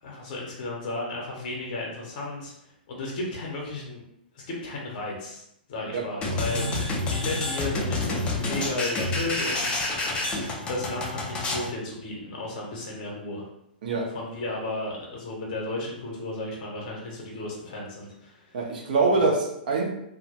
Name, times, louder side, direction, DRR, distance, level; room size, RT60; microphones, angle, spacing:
voice 1, 0.0-4.0 4.3-5.4 5.7-6.6 7.1-10.2 10.6-13.5 14.0-18.6 19.2-19.3, left 2 dB, 50° left, -2 dB, 0.7 m, -34 dB
sound 1, 6.2-11.7, left 2 dB, 20° left, 0.4 m, -28 dB
voice 2, 18.5-19.9, right 3 dB, 60° right, 0 dB, 0.7 m, -24 dB
2.1 x 2.0 x 2.8 m, 0.78 s
hypercardioid pair, 115°, 5 cm